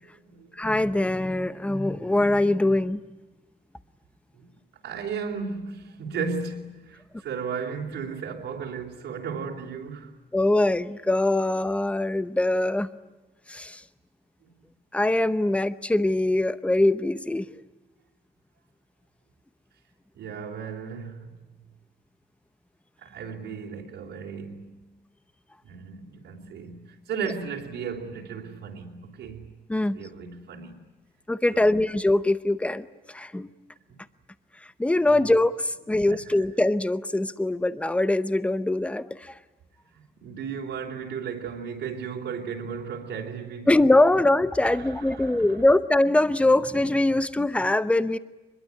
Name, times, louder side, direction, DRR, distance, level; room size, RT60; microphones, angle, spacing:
voice 1, 0.0-0.5 4.3-4.4 4.8-10.1 14.4-14.6 20.1-21.5 23.0-24.9 25.6-29.5 29.8-30.8 31.5-31.8 35.1-35.3 35.9-36.4 39.9-43.8 44.6-45.6, right 6 dB, 70° right, 3.7 m, -35 dB
voice 2, 0.6-3.0 10.3-12.9 13.5-13.8 14.9-17.5 29.7-30.0 31.3-33.5 34.8-39.3 43.7-48.2, left 2 dB, 5° left, 0.8 m, -23 dB
24.5 x 22.0 x 9.8 m
cardioid pair, 160°, 19 cm